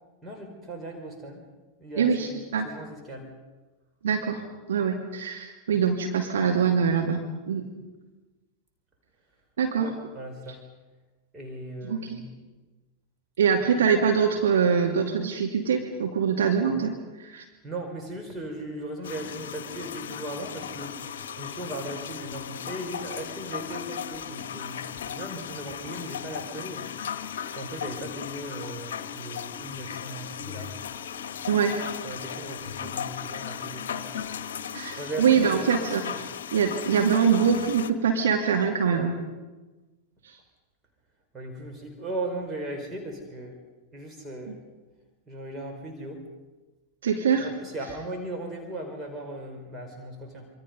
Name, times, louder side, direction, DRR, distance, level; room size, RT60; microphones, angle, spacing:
voice 1, 0.2-1.4 1.8-3.3 9.8-10.6 11.3-12.3 17.6-30.7 31.0-31.1 31.6-31.7 32.0-34.1 35.0-35.7 38.9-39.1 41.3-43.6 43.9-44.6 45.3-46.2 47.4-50.5, right 1 dB, 20° right, 2 dB, 5.1 m, -38 dB
voice 2, 2.0-2.7 4.0-4.4 4.7-7.2 7.5-7.6 9.6-9.9 11.8-12.2 13.4-17.4 31.5-31.8 34.7-39.1 40.2-40.4 44.5-44.6 47.0-47.5, right 6 dB, 65° right, 2 dB, 2.5 m, -24 dB
sound 1, 19.0-37.9, left 8 dB, 60° left, 1.3 m, -36 dB
27.5 x 25.0 x 5.4 m, 1.2 s
figure-of-eight pair, 90°, 0 cm